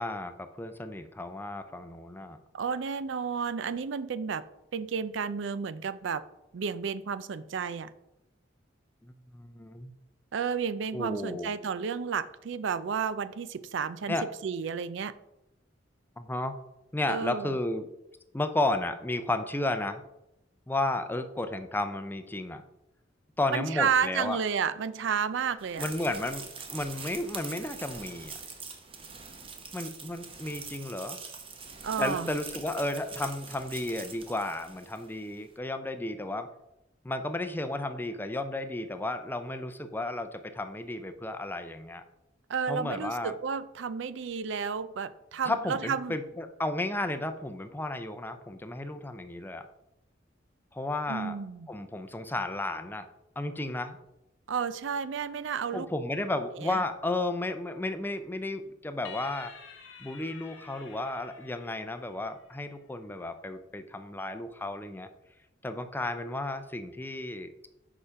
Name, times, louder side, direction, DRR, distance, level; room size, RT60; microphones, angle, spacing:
voice 1, 0.0-2.4 9.3-9.9 10.9-11.6 14.1-14.3 16.2-16.6 16.9-17.9 18.3-20.0 20.7-22.6 23.4-24.4 25.8-28.4 29.7-31.2 32.0-36.5 37.0-42.0 42.7-43.3 45.4-49.7 50.7-51.4 51.7-53.1 53.4-54.0 55.7-59.5 60.0-65.1 65.6-67.5, left 2 dB, 10° left, 9 dB, 0.5 m, -33 dB
voice 2, 2.5-4.4 4.7-6.2 6.5-7.9 10.3-15.1 17.1-17.5 23.5-25.9 31.8-32.3 42.5-46.1 51.1-51.7 54.5-55.9 56.6-56.8, right 6 dB, 65° right, 15 dB, 0.4 m, -31 dB
sound 1, 25.6-35.1, right 5 dB, 30° right, 0.9 m, -43 dB
sound 2, 59.1-62.6, left 7 dB, 80° left, 1.4 m, -49 dB
6.7 x 4.9 x 5.7 m, 0.89 s
head